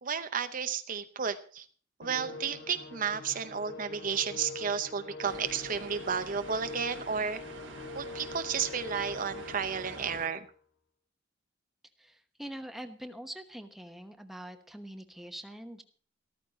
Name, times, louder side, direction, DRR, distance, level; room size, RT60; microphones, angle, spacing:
voice 1, 0.0-1.7 2.0-7.4 7.9-10.5, right 6 dB, 45° right, 10 dB, 0.7 m, -32 dB
Musical instrument, 2.0-10.5, left 3 dB, 60° left, 4.4 m, -44 dB
sound 1, 5.2-10.3, right 3 dB, 70° right, 1.5 m, -47 dB
voice 2, 12.0-15.8, equal, ahead, 7 dB, 1.1 m, -44 dB
14.0 x 13.5 x 4.2 m, 0.43 s
head